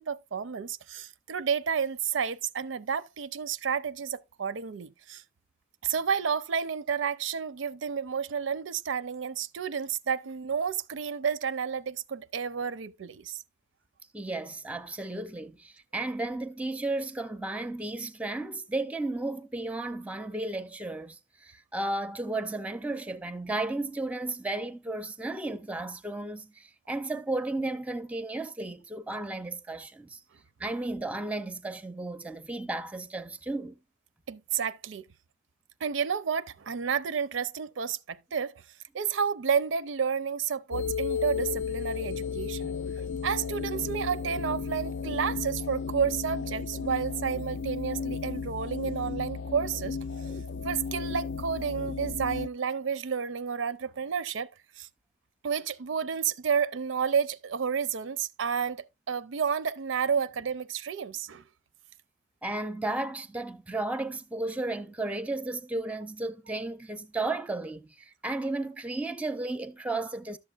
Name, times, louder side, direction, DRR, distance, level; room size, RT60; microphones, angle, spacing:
voice 1, 0.0-5.2 5.8-13.4 34.3-35.0 35.8-38.5 38.9-42.7 43.2-50.0 50.6-54.5 54.8-54.9 55.4-61.4, right 6 dB, 85° right, 0.5 m, -31 dB
voice 2, 14.1-30.2 30.6-33.8 62.4-70.4, right 2 dB, 5° right, 0.5 m, -34 dB
sound 1, 40.7-52.5, left 5 dB, 70° left, 0.4 m, -34 dB
11.5 x 7.1 x 2.3 m
head